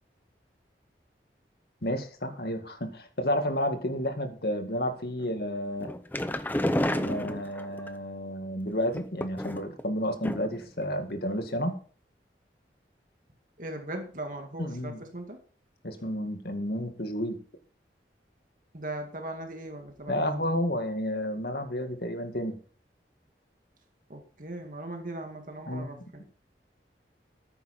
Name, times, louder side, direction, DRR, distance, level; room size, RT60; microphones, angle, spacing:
voice 1, 1.8-5.9 6.9-11.7 14.6-15.0 15.8-17.4 20.1-22.6 25.7-26.0, equal, 65° left, 7 dB, 2.1 m, -31 dB
sound 1, 5.8-7.9 8.9-9.8 10.2-10.7 10.9-11.0 11.4-11.5, left 1 dB, 10° left, 0.6 m, -30 dB
voice 2, 13.6-15.4 18.7-20.5 24.1-26.2, right 1 dB, 50° right, 4 dB, 2.1 m, -39 dB
14.0 x 9.8 x 4.3 m, 0.41 s
head